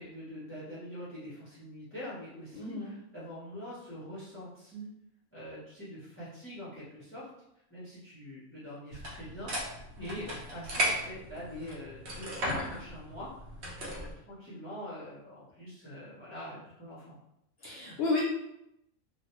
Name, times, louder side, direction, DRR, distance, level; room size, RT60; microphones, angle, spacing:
voice 1, 0.0-4.9 5.3-7.3 7.7-13.3 13.8-17.2, equal, 15° left, -12 dB, 0.5 m, -44 dB
voice 2, 2.5-2.9 10.0-10.2 17.6-18.2, left 3 dB, 65° left, -4 dB, 0.7 m, -32 dB
sound 1, 8.9-14.1, right 1 dB, 60° right, 0.8 m, -36 dB
2.3 x 2.1 x 2.9 m, 0.81 s
omnidirectional pair, 1.4 m